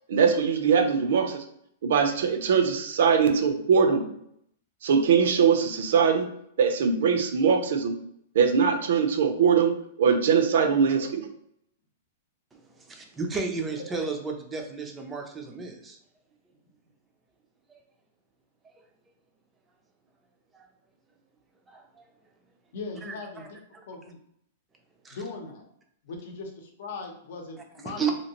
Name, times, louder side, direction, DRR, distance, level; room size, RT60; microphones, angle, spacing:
voice 1, 0.1-1.4 1.8-4.0 4.8-6.3 6.6-7.9 8.3-9.7 10.0-11.2, right 6 dB, 65° right, 6 dB, 0.5 m, -21 dB
voice 2, 12.5-16.0 17.7-17.8 18.6-18.8 20.5-20.7 21.7-22.1 23.0-23.5 23.7-23.8 25.0-25.2 27.8-28.1, right 5 dB, 10° right, 2 dB, 0.4 m, -33 dB
voice 3, 22.7-23.6 23.9-24.2 25.1-25.6 26.0-28.0, left 4 dB, 60° left, 3 dB, 0.7 m, -39 dB
2.9 x 2.8 x 2.8 m, 0.70 s
supercardioid pair, 165°, 0 cm